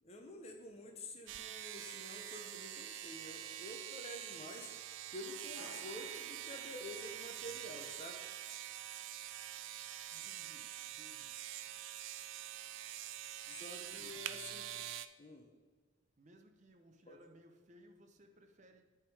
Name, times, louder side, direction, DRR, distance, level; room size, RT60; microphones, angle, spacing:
voice 1, 0.0-4.7 5.1-8.2 13.5-14.7 15.2-15.5 17.1-17.2, left 1 dB, 30° left, 4 dB, 0.6 m, -49 dB
sound 1, 1.3-15.1, right 12 dB, 65° right, 0.3 m, -46 dB
sound 2, 5.5-7.3, left 1 dB, 80° left, 1.0 m, -57 dB
voice 2, 10.1-11.3 13.5-14.2 16.2-18.8, equal, 35° right, 5 dB, 0.7 m, -62 dB
9.9 x 3.6 x 4.7 m, 1.4 s
head